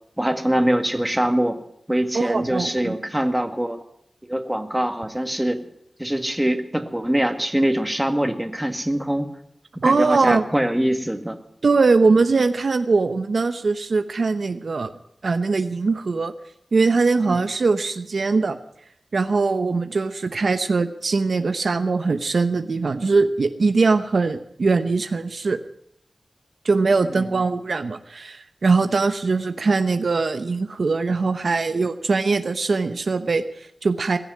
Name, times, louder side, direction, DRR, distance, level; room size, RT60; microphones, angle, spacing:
voice 1, 0.2-1.6 1.9-3.8 4.2-5.6 6.0-9.3 9.8-11.4 17.3-17.4 27.1-27.4, right 1 dB, 10° right, 7 dB, 1.9 m, -23 dB
voice 2, 2.1-2.9 9.8-10.5 11.6-14.9 15.2-16.3 16.7-18.6 19.1-25.6 26.6-34.2, right 4 dB, 75° right, 10 dB, 0.9 m, -21 dB
20.5 x 7.1 x 9.7 m, 0.74 s
wide cardioid pair, 60°, 0 cm